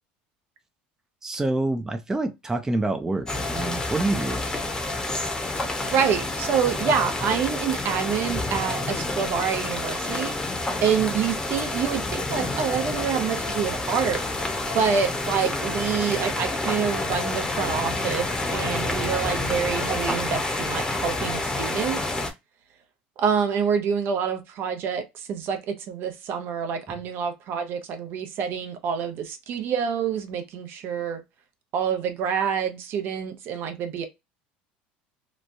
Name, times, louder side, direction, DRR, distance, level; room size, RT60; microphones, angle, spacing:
voice 1, 1.2-4.4 26.9-27.0, right 2 dB, 10° right, 0.5 m, -27 dB
sound 1, 3.3-22.3, left 2 dB, 15° left, 0.8 m, -28 dB
voice 2, 5.6-10.4 10.8-14.2 14.7-22.0 23.2-31.2 31.7-34.1, right 7 dB, 55° right, 0.7 m, -27 dB
3.0 x 2.2 x 2.6 m
supercardioid pair, 90°, 4 cm